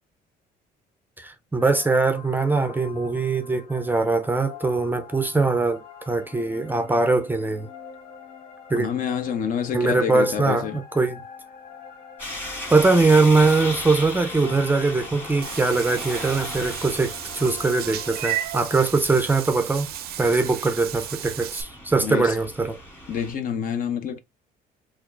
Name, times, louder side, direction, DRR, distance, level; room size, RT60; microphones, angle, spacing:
voice 1, 1.2-7.7 8.7-8.9 9.7-11.2 12.7-19.9 20.2-22.8, right 3 dB, 10° right, 0.5 m, -22 dB
sound 1, 1.6-18.5, left 7 dB, 75° left, 1.3 m, -44 dB
voice 2, 8.7-10.8 22.0-22.4 23.1-24.2, left 8 dB, 55° left, 0.7 m, -27 dB
sound 2, 12.2-23.3, left 1 dB, 10° left, 1.5 m, -37 dB
Meow / Water / Bathtub (filling or washing), 15.4-21.6, right 13 dB, 65° right, 0.5 m, -34 dB
4.1 x 2.4 x 2.6 m
cardioid pair, 110°, 17 cm